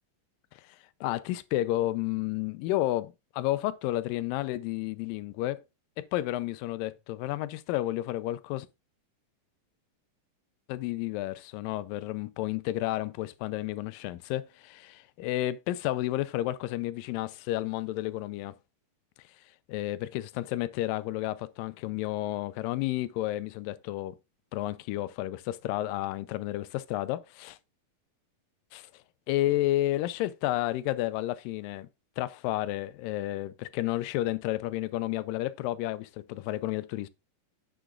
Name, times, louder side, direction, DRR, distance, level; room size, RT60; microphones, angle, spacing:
voice 1, 1.0-5.6 6.0-8.7 10.7-18.5 19.7-24.2 24.5-27.6 28.7-28.9 29.3-31.9 32.2-37.1, left 15 dB, 85° left, 2.3 m, -31 dB
10.0 x 7.0 x 2.4 m
omnidirectional pair, 3.9 m